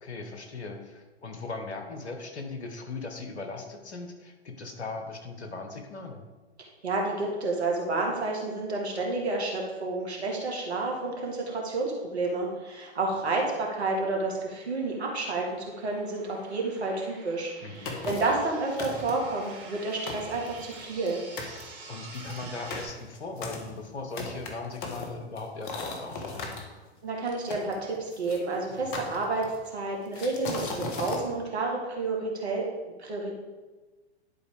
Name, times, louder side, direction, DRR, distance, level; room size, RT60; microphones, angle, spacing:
voice 1, 0.0-6.2 17.6-18.0 21.9-26.7, left 3 dB, 80° left, 5 dB, 1.3 m, -39 dB
voice 2, 6.8-21.2 27.0-29.5 29.7-32.7 33.0-33.3, right 3 dB, 75° right, -1 dB, 2.1 m, -30 dB
sound 1, 12.0-22.8, right 3 dB, 60° right, 2.2 m, -48 dB
sound 2, 17.9-18.4 18.8-19.3 19.8-19.9 20.1-21.1 21.4-21.6 22.1-26.6 27.5-28.4 28.9-29.7 30.1-31.2, left 3 dB, 50° left, 1.5 m, -37 dB
11.0 x 4.6 x 3.6 m, 1.2 s
figure-of-eight pair, 105°, 33 cm